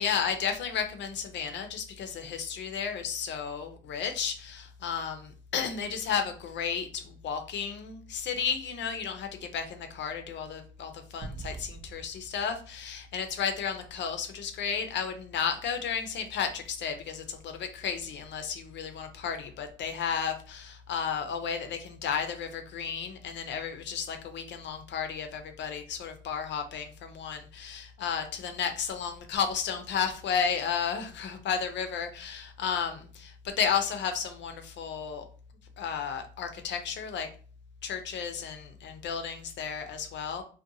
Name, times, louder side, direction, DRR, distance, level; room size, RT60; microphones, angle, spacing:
voice 1, 0.0-35.3 35.8-37.3 37.8-40.4, left 7 dB, 65° left, 7 dB, 0.5 m, -33 dB
sound 1, 11.2-13.8, right 3 dB, 65° right, 0.6 m, -45 dB
2.6 x 2.2 x 2.6 m, 0.40 s
cardioid pair, 90°, 20 cm